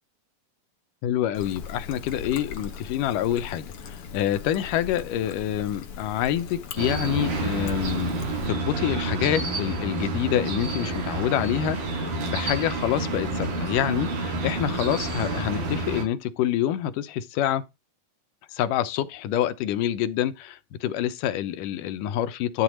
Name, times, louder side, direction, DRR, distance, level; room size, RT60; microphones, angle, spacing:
voice 1, 1.0-8.1 8.5-17.6 18.5-22.6, left 11 dB, 80° left, 2.5 m, -27 dB
Trickle dribble, 1.3-8.5, left 6 dB, 55° left, 2.0 m, -40 dB
sound 1, 6.8-16.0, right 2 dB, 85° right, 5.6 m, -29 dB
11.5 x 4.0 x 6.3 m
omnidirectional pair, 3.8 m